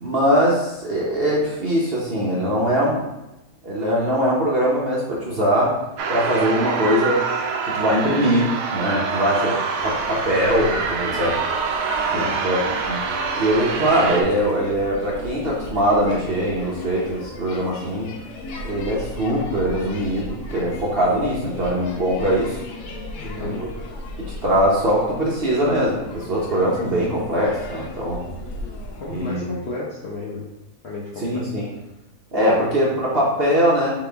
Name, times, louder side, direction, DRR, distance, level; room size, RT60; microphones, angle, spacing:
voice 1, 0.0-3.0 3.6-5.8 6.1-7.2 7.6-9.6 9.8-11.4 12.1-12.6 12.9-13.0 13.4-18.1 18.6-22.6 23.4-23.7 24.4-28.2 29.1-29.4 31.2-31.6 32.3-33.9, equal, 45° right, -5 dB, 0.8 m, -21 dB
sound 1, 6.0-14.2, right 5 dB, 90° right, 1.2 m, -25 dB
sound 2, 9.8-29.3, left 2 dB, 85° left, 1.3 m, -37 dB
voice 2, 23.1-23.6 29.0-30.5 30.8-31.5 32.5-32.6, left 3 dB, 55° left, -4 dB, 0.8 m, -32 dB
4.0 x 3.9 x 3.4 m, 0.96 s
omnidirectional pair, 1.7 m